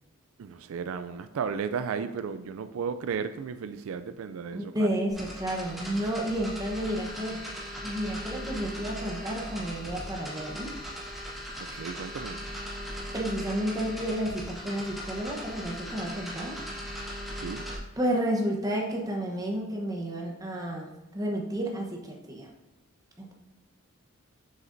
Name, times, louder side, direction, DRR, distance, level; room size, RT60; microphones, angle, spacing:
voice 1, 0.4-4.9 11.6-12.4 17.4-17.7, right 6 dB, 75° right, 0.3 m, -34 dB
voice 2, 4.5-7.4 7.8-10.7 13.1-16.6 18.0-22.5 23.2-23.3, right 1 dB, 15° right, 0.9 m, -31 dB
sound 1, 5.1-17.8, equal, ahead, 1.3 m, -39 dB
7.5 x 6.5 x 2.6 m
head